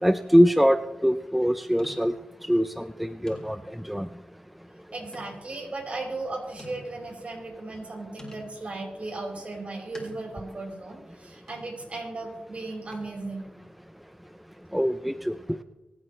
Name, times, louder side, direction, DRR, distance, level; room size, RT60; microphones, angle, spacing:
voice 1, 0.0-2.1 2.5-3.6 3.8-4.1 14.7-15.3, equal, 5° right, 11 dB, 0.6 m, -22 dB
sound 1, 0.6-0.9 1.8-2.3 2.8-2.9 3.3-3.9 5.1-5.5 6.0-6.1 6.6-7.2 8.2-8.6 9.9-10.5 11.5-11.9 12.9-13.3, left 1 dB, 20° left, 4.4 m, -47 dB
voice 2, 4.9-13.5, right 2 dB, 50° right, -2 dB, 5.6 m, -36 dB
24.5 x 8.7 x 3.4 m, 1.1 s
cardioid pair, 50°, 3 cm